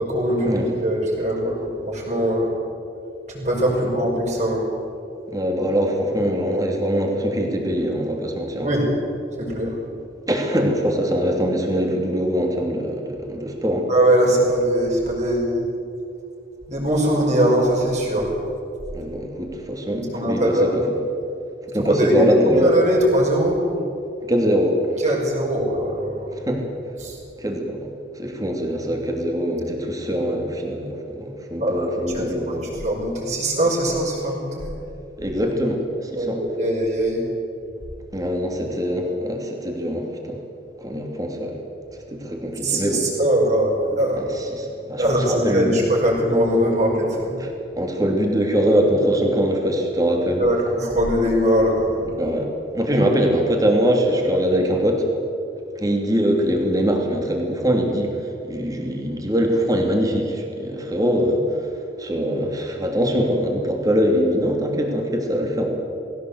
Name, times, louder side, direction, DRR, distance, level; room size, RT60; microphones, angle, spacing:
voice 1, 0.0-2.5 3.3-4.6 8.6-8.9 9.4-9.8 13.9-15.6 16.7-18.3 19.9-20.7 21.8-23.7 25.0-26.4 27.0-27.2 31.6-31.9 32.1-34.7 36.2-37.3 42.6-44.3 45.0-47.4 50.4-52.2 52.9-53.1, right 1 dB, 40° right, -2 dB, 5.6 m, -21 dB
voice 2, 5.3-8.7 10.3-13.9 18.9-20.8 21.6-22.7 24.2-24.8 26.4-26.7 27.4-27.9 28.1-32.8 35.2-36.4 38.1-40.4 40.8-41.6 42.1-43.1 44.2-45.8 47.4-47.5 47.7-50.4 52.2-52.5 52.7-55.1 55.8-58.2 58.5-61.6 62.0-65.7, equal, 20° right, 1 dB, 3.0 m, -22 dB
19.5 x 17.0 x 8.2 m, 2.7 s
head